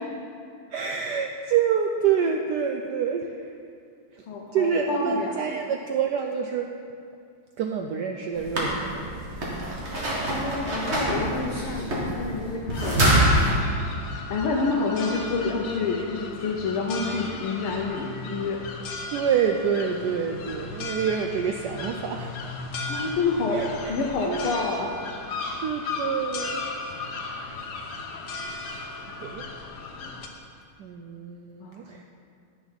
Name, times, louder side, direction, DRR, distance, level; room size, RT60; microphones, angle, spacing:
voice 1, 0.7-3.6 4.1-4.2 4.5-6.7 7.6-9.2 14.0-14.1 19.1-22.6 23.5-23.9 24.3-24.5 25.4-26.6 28.2-28.5 28.9-29.4 30.8-32.0, right 7 dB, 80° right, 3 dB, 0.9 m, -27 dB
voice 2, 4.3-5.6 10.3-13.6 14.3-18.6 22.9-23.6 23.9-25.0 31.6-31.8, left 4 dB, 85° left, 0 dB, 1.8 m, -28 dB
sound 1, 8.3-13.5, right 1 dB, 35° right, 1.9 m, -25 dB
sound 2, 12.7-30.3, left 3 dB, 60° left, 1.3 m, -36 dB
11.5 x 6.9 x 5.6 m, 2.3 s
omnidirectional pair, 2.3 m